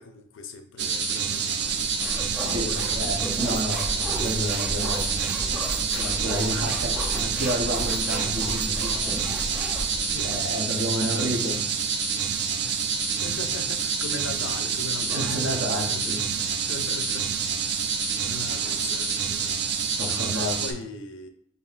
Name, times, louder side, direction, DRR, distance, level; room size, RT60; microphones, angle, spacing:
voice 1, 0.0-1.9 2.6-3.2 10.0-10.4 12.6-21.3, left 3 dB, 80° left, 0.5 m, -40 dB
sound 1, 0.8-20.7, right 6 dB, 60° right, 0.4 m, -27 dB
sound 2, 1.1-4.9 5.2-8.4 10.6-10.7 11.0-13.1 14.3-14.7 15.0-15.1 15.4-16.5 17.6-17.7 18.0-19.2, right 1 dB, 40° right, 1.5 m, -50 dB
sound 3, 1.6-10.4, equal, 5° right, 0.6 m, -34 dB
voice 2, 2.5-5.4 5.8-9.2 10.2-11.7 15.1-16.6 19.6-19.7 20.0-20.6, equal, 75° right, 0.8 m, -31 dB
4.9 x 2.7 x 2.4 m
head